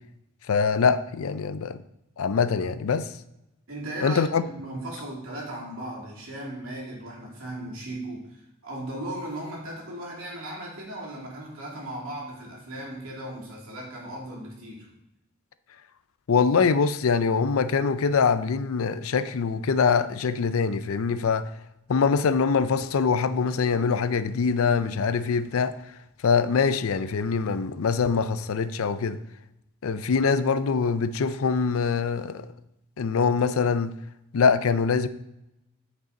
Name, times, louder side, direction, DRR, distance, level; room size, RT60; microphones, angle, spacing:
voice 1, 0.5-1.8 2.2-3.1 4.0-4.4 16.3-21.5 21.9-25.7 26.2-29.2 29.8-32.5 33.0-33.9 34.3-35.1, left 5 dB, 75° left, 0.5 m, -23 dB
voice 2, 3.7-14.9, right 1 dB, 70° right, 2.6 m, -37 dB
8.9 x 5.5 x 3.9 m
head